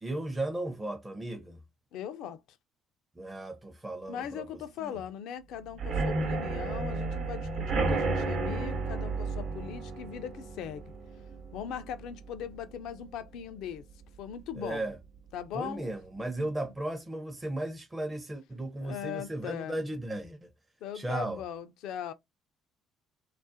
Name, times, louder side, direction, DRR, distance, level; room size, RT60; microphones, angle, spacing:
voice 1, 0.0-1.6 3.2-4.9 14.6-15.0 15.5-20.5 20.9-21.4, right 1 dB, 20° right, 0.5 m, -36 dB
voice 2, 1.9-2.4 4.1-10.8 11.5-13.8 14.2-14.9 15.3-15.9 16.4-16.5 18.8-19.8 20.8-22.1, left 9 dB, 65° left, 0.3 m, -39 dB
sound 1, 5.7-13.4 13.8-14.2 14.4-14.5 14.9-15.0, right 3 dB, 65° right, 0.8 m, -33 dB
2.3 x 2.0 x 2.6 m
figure-of-eight pair, 50°, 0 cm